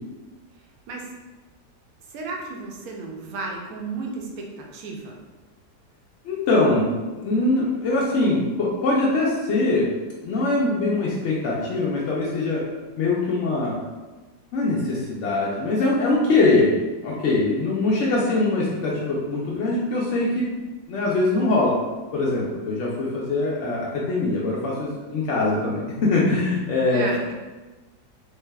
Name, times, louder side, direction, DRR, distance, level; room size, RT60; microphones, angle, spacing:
voice 1, 2.1-5.2 26.9-27.3, right 3 dB, 70° right, 0 dB, 1.0 m, -33 dB
voice 2, 6.2-9.9 10.2-12.6 13.0-13.8 14.5-16.7 17.0-20.5 20.9-21.8 22.1-27.1, left 2 dB, 85° left, -5 dB, 0.6 m, -22 dB
3.3 x 3.2 x 2.2 m, 1.2 s
omnidirectional pair, 1.8 m